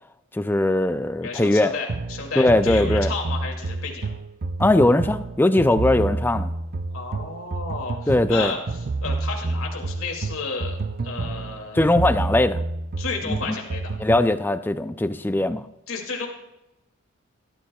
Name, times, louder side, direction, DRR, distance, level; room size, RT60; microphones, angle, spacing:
voice 1, 0.3-1.7 2.4-3.1 4.6-6.5 8.1-8.5 11.7-12.6 13.3-13.4 14.0-15.6, left 1 dB, 10° left, 11 dB, 0.4 m, -20 dB
voice 2, 1.2-4.1 6.9-10.8 11.0-11.8 13.0-13.9 15.9-16.3, left 4 dB, 75° left, 1 dB, 2.5 m, -32 dB
sound 1, 1.9-14.3, right 3 dB, 45° right, 0.5 m, -29 dB
17.0 x 13.0 x 2.3 m, 0.93 s
head